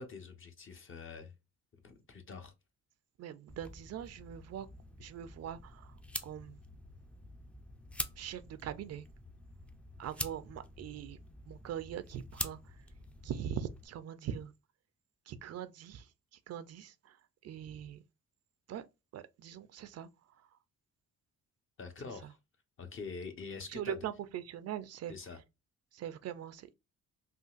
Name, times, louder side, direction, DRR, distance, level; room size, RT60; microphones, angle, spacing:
voice 1, 0.0-1.3 1.8-2.5 21.8-22.4 22.8-24.0 25.1-25.4, left 4 dB, 45° left, 0.9 m, -45 dB
voice 2, 3.2-4.7 5.0-6.0 6.2-6.6 8.2-9.1 10.0-11.2 11.5-12.8 13.2-14.5 15.3-18.0 18.7-18.9 19.1-20.6 23.6-25.1 25.9-26.7, right 9 dB, 55° right, 0.4 m, -42 dB
sound 1, 3.5-13.9, left 1 dB, 5° left, 0.4 m, -46 dB
3.8 x 2.4 x 2.4 m
cardioid pair, 90°, 30 cm